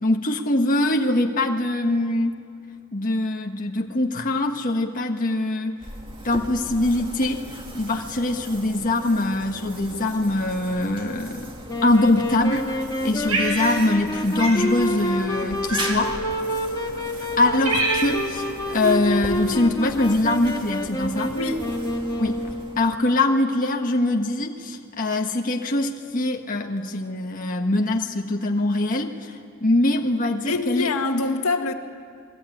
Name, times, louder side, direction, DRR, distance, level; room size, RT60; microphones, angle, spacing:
voice 1, 0.0-2.3 2.9-5.8 6.2-11.5 11.8-16.1 17.2-21.3 22.2-30.9, left 2 dB, 40° left, 1.5 m, -23 dB
sound 1, 5.8-23.2, right 1 dB, 25° right, 2.4 m, -39 dB
Wind instrument woodwind instrument, 11.7-22.8, left 1 dB, 20° left, 2.0 m, -28 dB
Cat, 13.3-14.1 14.4-14.6 15.7-16.2 16.9-17.0 17.3-18.3, right 2 dB, 85° right, 6.0 m, -26 dB
voice 2, 21.3-21.7 30.5-31.7, left 3 dB, 80° left, 2.0 m, -25 dB
29.5 x 22.0 x 9.3 m
head